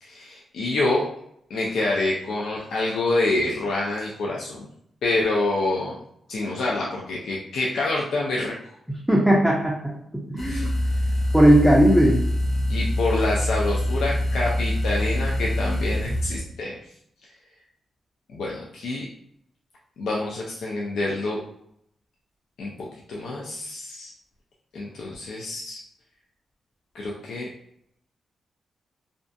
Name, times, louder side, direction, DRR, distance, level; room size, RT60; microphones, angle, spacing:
voice 1, 0.0-1.1 1.5-4.7 5.0-6.0 6.3-8.5 10.5-10.7 12.7-16.7 18.3-19.1 20.0-21.4 22.6-22.7 23.1-24.1 24.7-25.8 26.9-27.5, left 2 dB, 80° left, -3 dB, 0.4 m, -27 dB
voice 2, 9.1-10.7 11.3-12.2, right 1 dB, ahead, -3 dB, 0.4 m, -18 dB
sound 1, 10.4-16.4, left 1 dB, 40° left, 0.8 m, -25 dB
2.4 x 2.2 x 2.5 m, 0.73 s
wide cardioid pair, 150°, 0 cm